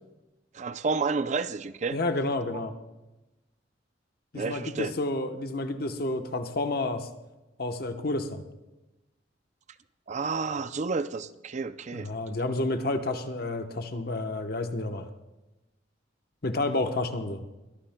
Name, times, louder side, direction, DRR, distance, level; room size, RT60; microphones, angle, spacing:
voice 1, 0.5-2.0 4.3-5.0 10.1-12.1, right 4 dB, 40° right, 13 dB, 0.5 m, -30 dB
voice 2, 1.9-2.7 4.3-7.1 7.6-8.4 11.9-15.1 16.4-17.4, left 2 dB, 55° left, 7 dB, 1.0 m, -30 dB
23.5 x 17.5 x 2.2 m, 1.1 s
head